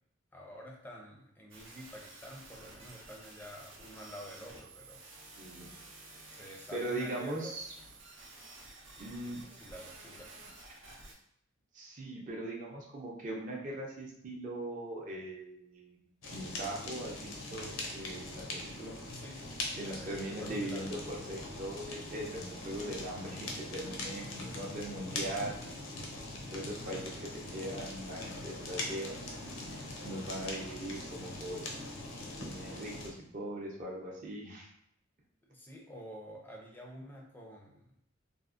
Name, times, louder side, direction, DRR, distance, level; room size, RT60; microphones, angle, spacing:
voice 1, 0.3-5.0 6.3-7.6 9.0-10.4 19.1-20.9 24.4-24.6 35.5-37.9, equal, 10° left, -1 dB, 0.4 m, -49 dB
sound 1, 1.5-11.1, right 2 dB, 80° right, 0.7 m, -52 dB
voice 2, 5.4-5.7 6.3-7.7 9.0-9.4 11.7-18.9 19.8-26.2 26.5-29.2 29.7-31.6 32.4-34.7, right 1 dB, 40° right, -2 dB, 0.5 m, -40 dB
Fire, 16.2-33.1, left 2 dB, 85° left, 0.6 m, -42 dB
3.4 x 2.0 x 2.4 m, 0.71 s
head